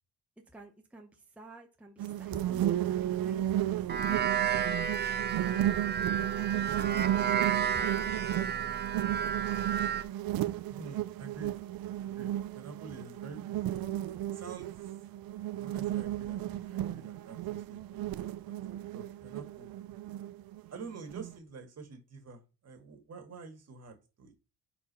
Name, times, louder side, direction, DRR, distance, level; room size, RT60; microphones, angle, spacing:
voice 1, 0.5-4.3 6.4-8.6, right 1 dB, 5° right, 2 dB, 0.9 m, -51 dB
sound 1, 2.0-21.4, right 12 dB, 85° right, 0.6 m, -34 dB
sound 2, 3.9-10.0, right 8 dB, 30° right, 0.5 m, -32 dB
voice 2, 10.7-11.5 12.0-13.4 13.7-13.8 14.3-14.8 15.6-17.8 18.5-19.7 20.7-24.3, right 4 dB, 45° right, 4 dB, 1.8 m, -48 dB
4.5 x 4.2 x 5.4 m, 0.30 s
cardioid pair, 120°, 35 cm